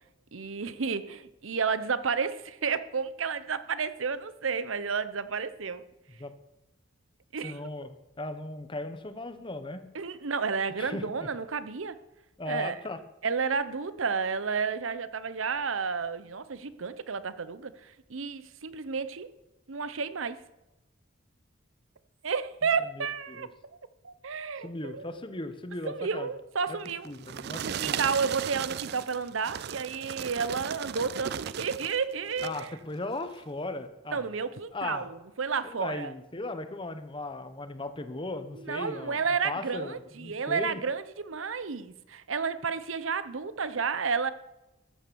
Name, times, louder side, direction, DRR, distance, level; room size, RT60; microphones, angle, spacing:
voice 1, 0.3-5.8 7.3-7.6 9.9-12.0 12.5-12.8 13.2-19.3 19.7-20.4 22.2-23.8 24.0-25.1 25.9-27.1 27.6-32.7 34.1-35.1 35.4-36.1 38.6-44.3, right 5 dB, 80° right, 14 dB, 0.8 m, -31 dB
voice 2, 7.4-9.8 10.8-11.3 12.4-13.0 22.8-23.5 24.6-26.3 26.7-26.8 27.0-28.1 32.4-34.3 34.7-35.1 35.6-40.8, left 2 dB, 25° left, 10 dB, 1.0 m, -37 dB
sound 1, 26.9-32.0 32.3-32.7 33.3-33.4, right 9 dB, 55° right, 0.4 m, -36 dB
14.0 x 8.6 x 7.0 m, 0.96 s
head